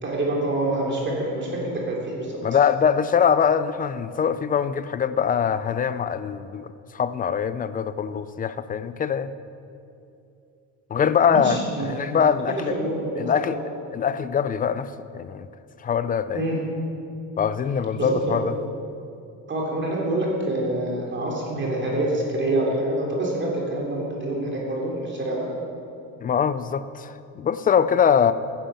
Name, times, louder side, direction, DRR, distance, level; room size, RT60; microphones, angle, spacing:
voice 1, 0.0-2.3 11.3-13.6 16.3-16.6 18.0-18.4 19.5-25.5, right 1 dB, 30° right, -2 dB, 3.0 m, -26 dB
voice 2, 2.4-9.3 10.9-12.7 13.2-13.6 13.9-15.5 15.8-16.4 17.4-18.5 26.2-28.3, left 7 dB, 25° left, 14 dB, 0.3 m, -23 dB
14.5 x 10.0 x 5.7 m, 2.6 s
cardioid pair, 135°, 37 cm